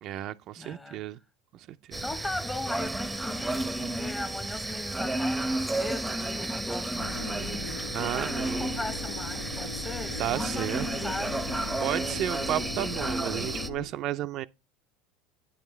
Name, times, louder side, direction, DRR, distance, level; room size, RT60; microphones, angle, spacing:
voice 1, 0.0-1.2 1.5-2.0 7.9-8.7 10.2-10.9 11.8-14.5, right 13 dB, 50° right, 0.4 m, -33 dB
voice 2, 0.6-1.0 2.0-11.5, left 2 dB, 15° left, 1.0 m, -38 dB
sound 1, 1.9-13.7, right 1 dB, 5° right, 0.7 m, -32 dB
sound 2, 7.0-13.8, left 3 dB, 85° left, 1.0 m, -39 dB
8.9 x 7.1 x 3.2 m
supercardioid pair, 110°, 0 cm